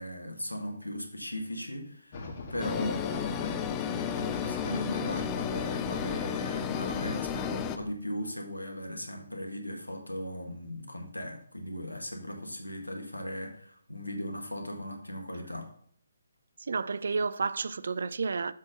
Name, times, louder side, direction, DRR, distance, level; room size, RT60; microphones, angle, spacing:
voice 1, 0.0-15.7, equal, 85° left, 1.7 m, -38 dB
sound 1, 2.1-7.9, left 2 dB, 40° left, 1.6 m, -40 dB
sound 2, 2.6-7.8, left 9 dB, 20° left, 0.4 m, -33 dB
voice 2, 16.6-18.5, right 4 dB, 60° right, 0.4 m, -31 dB
7.3 x 4.3 x 5.0 m
figure-of-eight pair, 140°, 0 cm